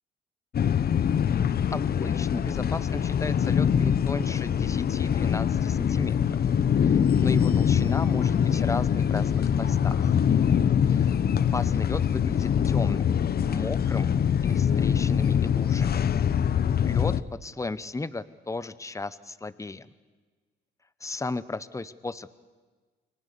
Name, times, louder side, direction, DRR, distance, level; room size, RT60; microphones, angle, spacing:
sound 1, 0.5-17.2, left 8 dB, 50° left, 1.0 m, -24 dB
voice 1, 1.7-6.4 6.8-10.1 10.8-11.2 11.5-13.1 13.5-14.1 14.4-16.0 16.8-17.1 17.4-19.9 21.0-22.3, left 3 dB, 15° left, 14 dB, 1.0 m, -35 dB
29.5 x 23.5 x 7.0 m, 1.4 s
cardioid pair, 90°, 20 cm